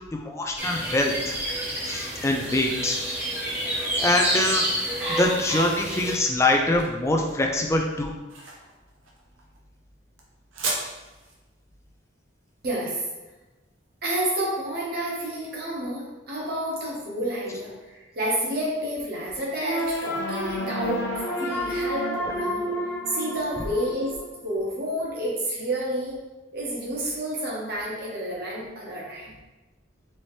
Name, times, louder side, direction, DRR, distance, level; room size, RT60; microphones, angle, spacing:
voice 1, 0.1-1.4 1.9-3.0 3.8-4.6 5.2-8.1, left 2 dB, 15° left, 2 dB, 0.3 m, -24 dB
sound 1, 0.6-6.2, right 1 dB, 10° right, 0.9 m, -28 dB
sound 2, 5.5-14.1, right 2 dB, 85° right, 0.8 m, -38 dB
voice 2, 12.6-13.0 14.0-21.0 21.4-22.7 23.1-24.1 24.4-26.1 26.5-29.3, right 1 dB, 50° right, -5 dB, 1.2 m, -29 dB
sound 3, 19.6-24.6, equal, 70° left, 0.8 m, -30 dB
4.2 x 2.9 x 3.1 m, 1.1 s
head